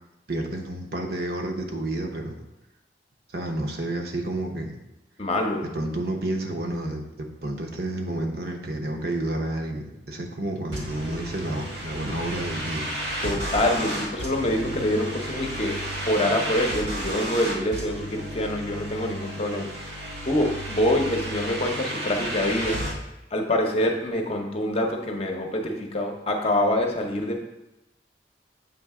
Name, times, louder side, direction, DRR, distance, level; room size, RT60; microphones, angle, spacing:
voice 1, 0.3-2.4 3.3-4.7 5.6-12.8, right 1 dB, 60° right, 3 dB, 0.8 m, -30 dB
voice 2, 5.2-5.7 13.2-15.7 16.1-19.7 20.3-22.8 23.3-27.4, left 1 dB, 35° left, 2 dB, 0.7 m, -25 dB
sound 1, 10.7-22.9, equal, 85° right, 1.6 m, -32 dB
7.5 x 3.2 x 4.7 m, 0.92 s
head